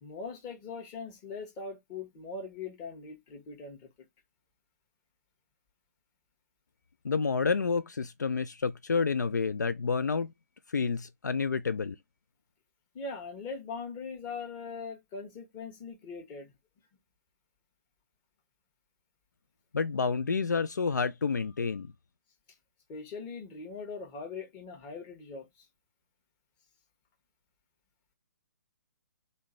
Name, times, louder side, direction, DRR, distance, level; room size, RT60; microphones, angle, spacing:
voice 1, 0.0-3.9 12.9-16.5 22.9-25.7, left 4 dB, 25° left, 1.2 m, -41 dB
voice 2, 7.0-10.3 10.7-12.0 19.7-21.9, left 5 dB, 75° left, 0.4 m, -29 dB
3.6 x 2.6 x 4.2 m
figure-of-eight pair, 130°, 10 cm